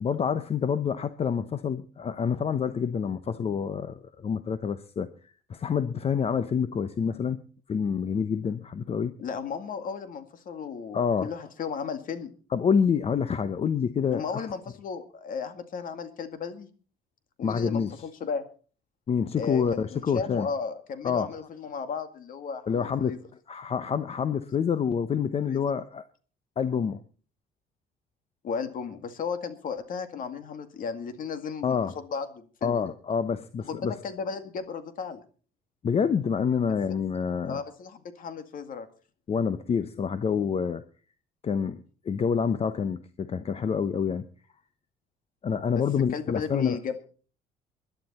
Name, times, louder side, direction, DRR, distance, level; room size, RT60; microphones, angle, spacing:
voice 1, 0.0-7.4 7.7-9.1 10.9-11.3 12.5-14.5 17.4-18.0 19.1-20.5 21.0-21.3 22.7-23.1 23.5-26.0 26.6-27.0 31.6-31.9 32.6-34.0 35.8-37.6 39.3-40.8 41.4-44.3 45.4-46.8, left 6 dB, 35° left, 12 dB, 0.8 m, -27 dB
voice 2, 9.2-12.3 14.1-16.7 17.4-18.5 19.3-19.8 20.1-23.2 25.5-25.6 28.4-31.8 32.1-32.9 33.7-35.2 37.5-38.9 45.7-45.8 46.1-47.0, left 6 dB, 55° left, 9 dB, 2.1 m, -34 dB
21.0 x 11.5 x 4.3 m, 0.41 s
cardioid pair, 110°, 17 cm